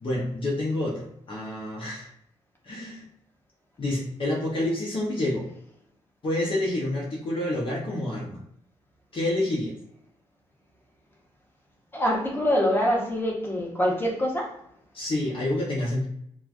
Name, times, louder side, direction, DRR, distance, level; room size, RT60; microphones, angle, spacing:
voice 1, 0.0-2.1 2.6-3.0 3.8-5.5 6.2-8.4 9.1-9.7 14.9-16.1, left 1 dB, 45° left, -4 dB, 0.8 m, -28 dB
voice 2, 11.9-14.5, equal, 20° left, -2 dB, 1.1 m, -24 dB
3.1 x 2.2 x 2.5 m, 0.72 s
supercardioid pair, 50°, 12 cm